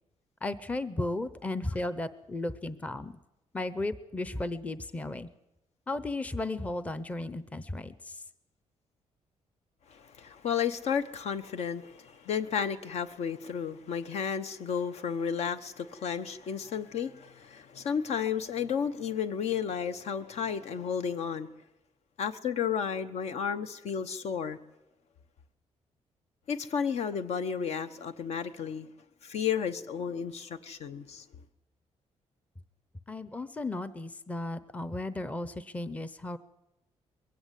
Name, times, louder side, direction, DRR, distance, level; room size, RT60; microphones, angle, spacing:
voice 1, 0.4-3.1 3.5-5.3 5.9-8.2 33.1-36.4, left 2 dB, 10° left, 0.7 m, -35 dB
voice 2, 9.9-21.5 22.2-24.6 26.5-28.9 29.2-31.2, left 7 dB, 65° left, 1.1 m, -32 dB
22.0 x 16.0 x 8.3 m
cardioid pair, 160°, 12 cm